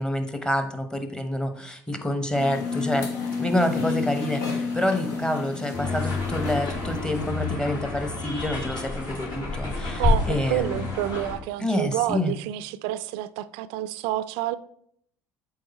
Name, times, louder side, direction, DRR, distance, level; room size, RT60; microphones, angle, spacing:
voice 1, 0.0-3.1 3.4-10.8 11.6-12.3, left 1 dB, 10° left, 1.0 m, -27 dB
sound 1, 2.3-7.5, left 4 dB, 80° left, 1.1 m, -31 dB
sound 2, 5.7-11.4, left 3 dB, 55° left, 2.8 m, -29 dB
voice 2, 10.0-14.6, right 14 dB, 70° right, 0.3 m, -28 dB
7.8 x 3.4 x 4.2 m
hypercardioid pair, 65°, 9 cm